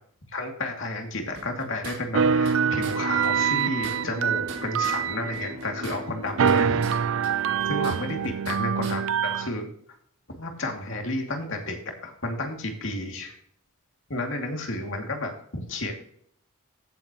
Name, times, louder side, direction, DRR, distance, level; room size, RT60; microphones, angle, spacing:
voice 1, 0.3-6.9 7.2-7.3 7.7-9.7 10.4-13.4 14.1-15.9, left 2 dB, 60° left, 2 dB, 2.5 m, -32 dB
sound 1, 1.3-2.6 2.8-3.0 3.2-3.3 3.6-5.0 5.3-7.0 7.2-8.6 8.8-9.0, right 4 dB, 80° right, 3.9 m, -40 dB
sound 2, 2.1-6.0 6.4-9.5, right 7 dB, 60° right, 0.4 m, -25 dB
Bowed string instrument, 2.8-8.3, left 2 dB, 30° right, 4.1 m, -44 dB
16.0 x 7.9 x 3.0 m, 0.65 s
head